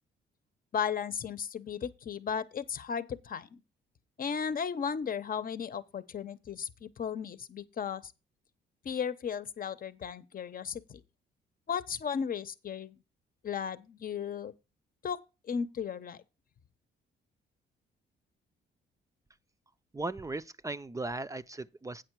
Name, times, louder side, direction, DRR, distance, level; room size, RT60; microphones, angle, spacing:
voice 1, 0.7-3.6 4.2-8.1 8.8-11.0 11.7-13.0 13.4-14.5 15.0-16.2, left 7 dB, 45° left, 0.9 m, -35 dB
voice 2, 19.9-22.0, right 2 dB, 15° right, 0.6 m, -37 dB
9.0 x 6.6 x 4.6 m
cardioid pair, 90°, 20 cm